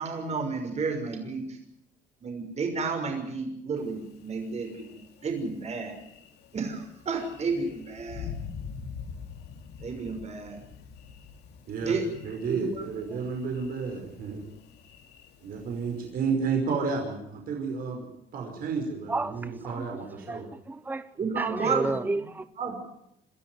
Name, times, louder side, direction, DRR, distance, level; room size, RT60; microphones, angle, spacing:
voice 1, 0.0-1.6 2.2-5.9 6.5-8.3 9.8-10.6 11.8-12.1 12.5-12.8 13.1-13.2 21.2-22.1 22.6-22.7, right 4 dB, 40° right, 6.1 m, -31 dB
Thunder, 3.8-16.1, left 6 dB, 75° left, 3.5 m, -45 dB
voice 2, 12.2-14.4 15.4-18.1 18.3-20.5, right 5 dB, 60° right, 5.3 m, -31 dB
voice 3, 19.1-19.9 20.2-21.1 21.4-22.5, right 2 dB, 10° right, 0.9 m, -31 dB
27.0 x 13.5 x 9.5 m
cardioid pair, 110°, 17 cm